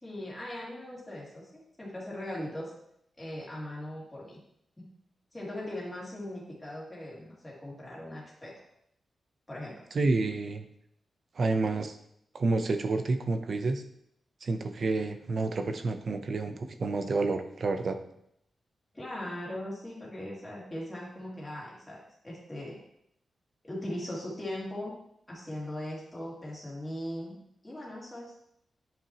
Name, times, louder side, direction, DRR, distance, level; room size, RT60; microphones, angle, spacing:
voice 1, 0.0-2.7 3.2-4.4 4.8-4.9 5.3-8.5 9.5-9.8 18.9-22.8 23.6-25.0 25.3-27.4 27.6-28.3, left 1 dB, 10° left, -5 dB, 2.5 m, -39 dB
voice 2, 9.9-10.6 11.4-12.0 12.3-13.8 14.4-18.0, right 3 dB, 45° right, 8 dB, 0.6 m, -29 dB
9.8 x 5.8 x 2.9 m, 0.73 s
wide cardioid pair, 165°, 0 cm